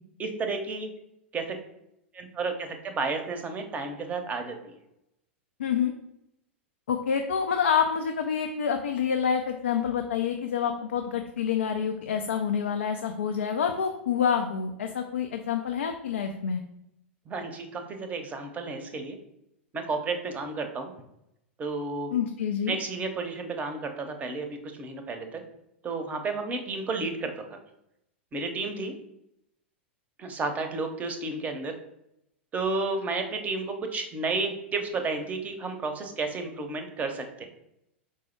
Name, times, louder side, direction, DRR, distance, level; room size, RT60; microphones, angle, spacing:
voice 1, 0.2-0.9 1.3-1.6 2.1-4.6 17.3-19.2 19.7-20.9 21.6-22.1 22.7-25.4 25.8-27.6 28.3-28.9 30.2-31.7 32.5-37.5, right 3 dB, 25° right, 6 dB, 0.6 m, -32 dB
voice 2, 5.6-5.9 6.9-16.6 22.1-22.8, left 7 dB, 75° left, 4 dB, 0.3 m, -27 dB
4.6 x 2.0 x 4.4 m, 0.82 s
figure-of-eight pair, 95°, 7 cm